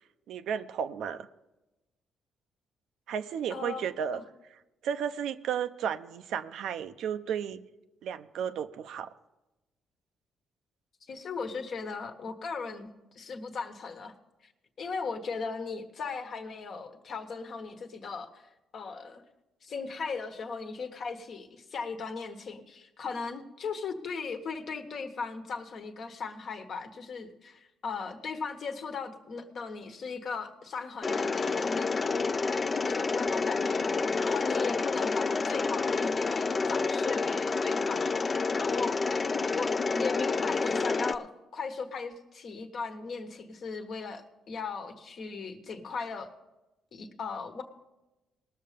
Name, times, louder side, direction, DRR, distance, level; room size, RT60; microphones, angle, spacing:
voice 1, 0.3-1.3 3.1-4.2 4.8-7.6 8.0-9.1, right 8 dB, 80° right, 10 dB, 0.6 m, -33 dB
voice 2, 3.5-3.8 4.1-4.2 11.1-14.1 14.4-14.5 14.8-19.2 19.6-31.9 32.8-33.9 34.2-39.2 39.5-46.3 46.9-47.6, left 4 dB, 55° left, 6 dB, 1.3 m, -38 dB
Mechanisms, 31.0-41.1, left 4 dB, 35° left, 0.5 m, -29 dB
19.5 x 6.5 x 5.1 m, 1.0 s
cardioid pair, 90°, 0 cm